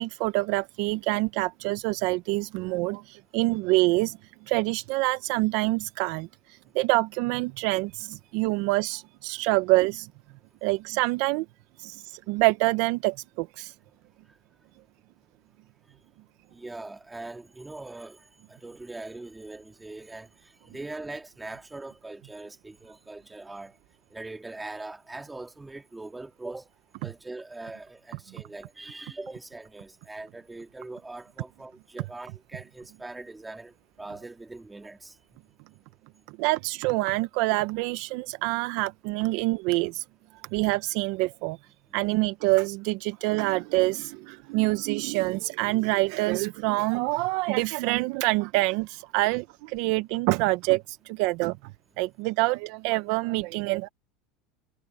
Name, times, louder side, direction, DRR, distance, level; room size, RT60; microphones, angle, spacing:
voice 1, 0.0-4.2 4.5-6.3 6.7-10.1 10.6-11.5 11.8-13.7 36.4-40.0 40.5-41.6 41.9-51.6 52.0-53.9, right 22 dB, 60° right, 0.6 m, -26 dB
voice 2, 16.5-23.8 24.1-26.7 27.0-35.2, right 2 dB, 5° right, 2.6 m, -41 dB
supercardioid pair, 160°, 0 cm